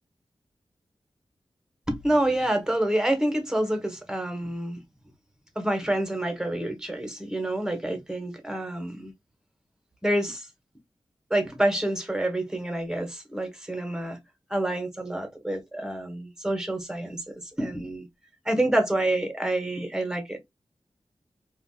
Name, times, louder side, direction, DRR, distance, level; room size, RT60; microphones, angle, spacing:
voice 1, 1.9-4.8 5.5-9.1 10.0-10.5 11.3-14.2 14.5-18.1 18.4-20.4, right 1 dB, 5° right, 1.2 m, -27 dB
4.1 x 2.5 x 2.3 m
cardioid pair, 65°, 10 cm